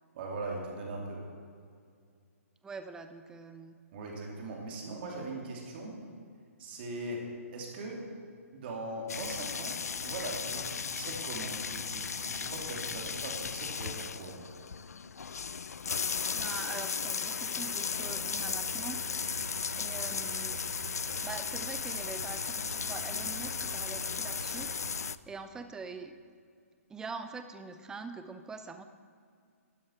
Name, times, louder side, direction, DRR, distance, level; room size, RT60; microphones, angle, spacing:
voice 1, 0.1-1.3 3.9-6.0 6.6-8.0 8.5-14.4, right 2 dB, 45° right, -1 dB, 2.7 m, -40 dB
voice 2, 2.6-3.8 16.3-19.0 19.8-20.6 21.2-24.7 25.3-26.2 26.9-28.8, right 4 dB, 10° right, 9 dB, 0.5 m, -44 dB
sound 1, 9.1-25.2, left 6 dB, 90° left, 0.3 m, -36 dB
sound 2, 17.9-25.1, right 4 dB, 70° right, 0.9 m, -47 dB
12.0 x 10.5 x 4.5 m, 2.2 s
hypercardioid pair, 140°, 8 cm